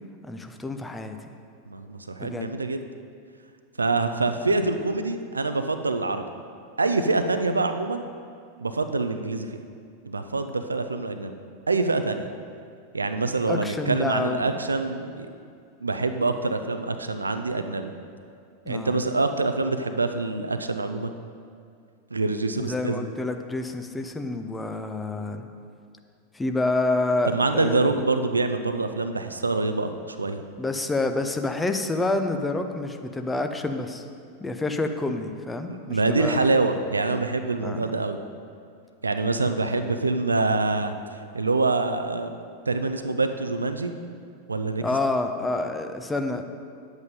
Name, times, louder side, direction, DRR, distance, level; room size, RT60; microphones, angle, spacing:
voice 1, 0.2-1.2 2.2-2.5 13.5-14.5 18.6-19.0 22.6-25.5 26.3-28.0 30.6-34.0 34.4-36.5 37.6-37.8 44.8-46.4, left 2 dB, 10° left, 6 dB, 0.7 m, -28 dB
voice 2, 1.7-2.9 3.8-6.3 6.8-8.0 8.6-9.6 10.0-11.3 11.7-12.3 12.9-15.3 15.8-17.9 18.7-21.1 22.1-23.0 27.2-30.4 35.7-38.2 39.0-42.4 42.7-43.9 44.5-44.8, right 3 dB, 80° right, 8 dB, 0.5 m, -25 dB
9.3 x 8.1 x 5.3 m, 2.3 s
figure-of-eight pair, 90°, 0 cm